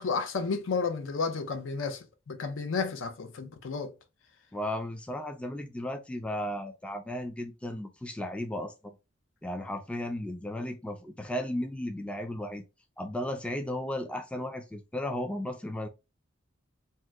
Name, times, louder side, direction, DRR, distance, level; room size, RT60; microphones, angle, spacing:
voice 1, 0.0-3.9, left 4 dB, 70° left, 0.5 m, -32 dB
voice 2, 4.5-9.0 9.4-12.6 13.0-15.9, left 1 dB, 5° left, 0.3 m, -35 dB
2.8 x 2.1 x 3.3 m
head